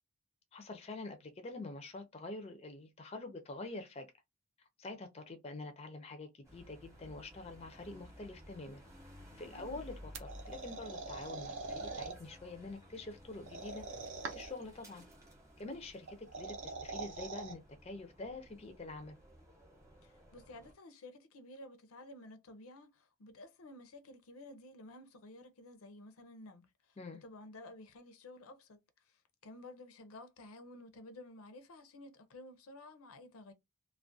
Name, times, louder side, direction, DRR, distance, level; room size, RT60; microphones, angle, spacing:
voice 1, 0.5-4.1 4.8-8.8 9.4-9.9 10.2-13.8 14.3-15.0 15.6-19.2 27.0-27.2, left 2 dB, 30° left, 0.4 m, -46 dB
sound 1, 6.4-20.7, equal, 15° right, 0.8 m, -56 dB
sound 2, 10.1-12.1 13.5-14.6 16.1-17.5, right 3 dB, 60° right, 0.5 m, -43 dB
voice 2, 20.0-33.5, left 2 dB, 80° left, 0.5 m, -53 dB
2.3 x 2.1 x 2.5 m
head